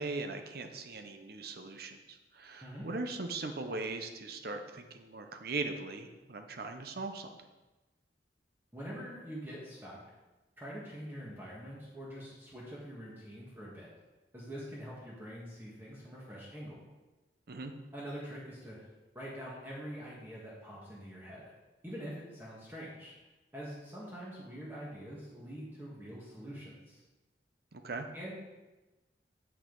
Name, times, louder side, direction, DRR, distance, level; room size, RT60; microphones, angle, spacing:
voice 1, 0.0-7.3 17.5-17.7 27.7-28.1, right 3 dB, 60° right, 6 dB, 0.8 m, -39 dB
voice 2, 8.7-10.0 10.6-13.9 14.3-16.8 17.9-18.8 19.1-21.5 21.8-23.1 23.5-27.0 28.1-28.3, equal, 10° right, -6 dB, 1.6 m, -45 dB
8.9 x 7.2 x 3.9 m, 1.1 s
head